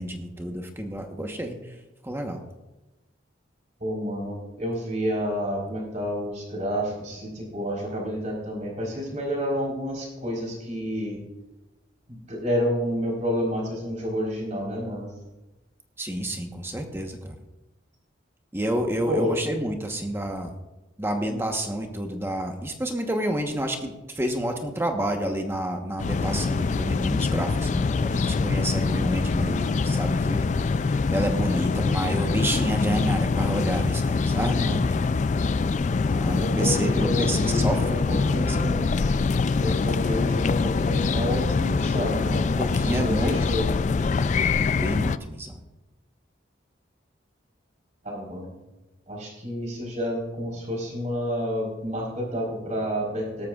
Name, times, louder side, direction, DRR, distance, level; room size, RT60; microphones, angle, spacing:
voice 1, 0.0-1.6 2.0-2.4 16.0-17.4 18.5-20.5 21.0-35.0 36.1-38.6 42.6-43.4 44.8-45.6, right 1 dB, 10° right, 4 dB, 1.1 m, -29 dB
voice 2, 3.8-11.2 12.1-15.1 19.0-19.4 21.3-21.4 36.4-38.9 39.6-42.5 42.9-43.7 43.9-44.1 48.0-48.5 49.1-53.5, equal, 40° right, -2 dB, 4.2 m, -29 dB
sound 1, 26.0-45.2, left 4 dB, 40° left, 0.3 m, -24 dB
18.0 x 13.5 x 2.4 m, 1.0 s
head